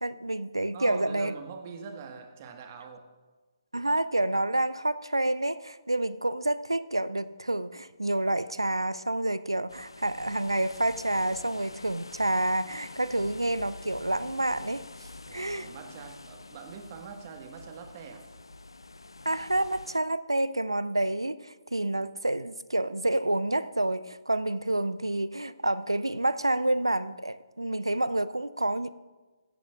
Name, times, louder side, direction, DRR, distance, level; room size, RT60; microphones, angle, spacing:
voice 1, 0.0-1.3 3.7-14.8 15.3-15.7 19.3-28.9, right 1 dB, 90° right, 15 dB, 0.5 m, -28 dB
voice 2, 0.7-3.1 15.3-18.3, right 6 dB, 35° right, 4 dB, 1.6 m, -43 dB
sound 1, 9.7-20.0, left 2 dB, 80° left, 0.5 m, -47 dB
16.0 x 13.5 x 2.5 m, 1.3 s
figure-of-eight pair, 140°, 2 cm